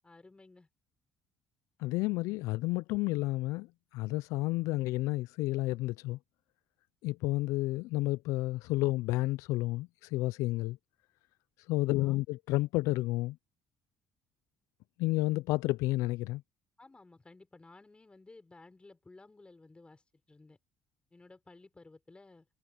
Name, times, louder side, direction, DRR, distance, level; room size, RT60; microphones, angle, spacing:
voice 1, 0.0-0.7 11.8-12.2 16.8-20.0 20.3-20.6 21.1-22.5, left 3 dB, 20° left, 5.0 m, -56 dB
voice 2, 1.8-3.7 3.9-6.2 7.0-10.8 11.7-13.4 15.0-16.4, left 19 dB, 80° left, 0.4 m, -31 dB
supercardioid pair, 70°, 5 cm